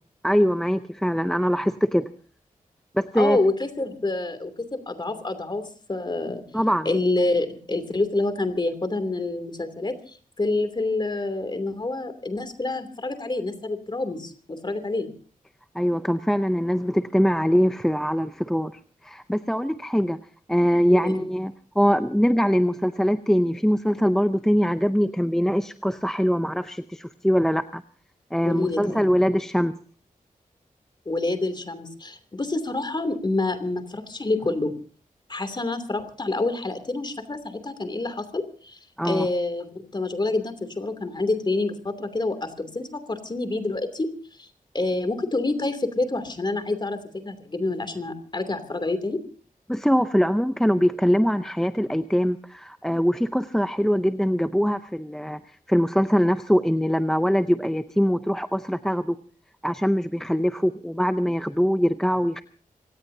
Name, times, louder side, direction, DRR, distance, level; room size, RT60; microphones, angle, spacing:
voice 1, 0.2-2.1 2.9-3.4 6.5-6.9 15.7-20.2 20.5-27.8 28.3-29.7 39.0-39.3 49.7-55.4 55.7-59.2 59.6-62.4, equal, 5° left, 9 dB, 0.6 m, -22 dB
voice 2, 3.2-5.6 5.9-6.4 6.8-15.1 20.9-21.2 28.4-29.0 31.0-34.7 35.3-38.8 39.0-44.1 44.4-44.5 44.7-49.2, left 2 dB, 30° left, 9 dB, 2.9 m, -27 dB
26.0 x 18.0 x 2.8 m, 0.41 s
wide cardioid pair, 105°, 14 cm